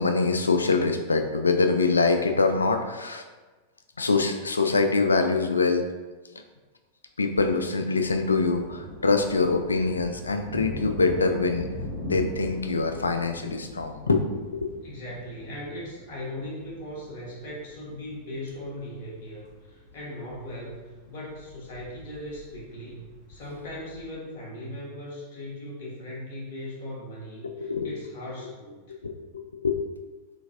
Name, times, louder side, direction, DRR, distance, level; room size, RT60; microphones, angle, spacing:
voice 1, 0.0-3.2 4.0-5.8 7.2-11.7 12.0-14.7 27.4-28.0 29.0-29.8, left 4 dB, 75° left, 6 dB, 0.3 m, -24 dB
sound 1, 8.0-24.1, equal, 30° left, 1.3 m, -41 dB
voice 2, 14.8-28.8, left 1 dB, 50° left, -4 dB, 1.3 m, -39 dB
3.8 x 3.4 x 2.5 m, 1.2 s
figure-of-eight pair, 90°, 0 cm